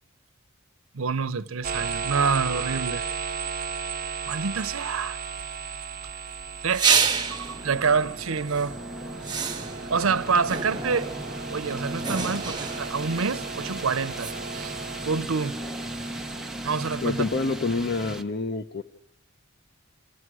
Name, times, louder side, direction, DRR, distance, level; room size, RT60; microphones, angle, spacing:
voice 1, 0.9-3.1 4.3-5.2 6.6-6.9 7.2-8.8 9.9-11.1 11.5-14.7 15.0-15.6 16.6-17.3, right 5 dB, 85° right, 0.8 m, -27 dB
sound 1, 1.6-17.4, right 5 dB, 45° right, 0.8 m, -36 dB
sound 2, 6.7-7.6 8.5-8.7 9.2-10.0 10.5-11.1 12.0-13.1 14.2-14.3, right 6 dB, 20° right, 1.3 m, -27 dB
sound 3, 6.8-18.2, equal, ahead, 1.0 m, -37 dB
voice 2, 17.0-18.8, left 3 dB, 55° left, 0.8 m, -27 dB
29.0 x 15.5 x 6.3 m
head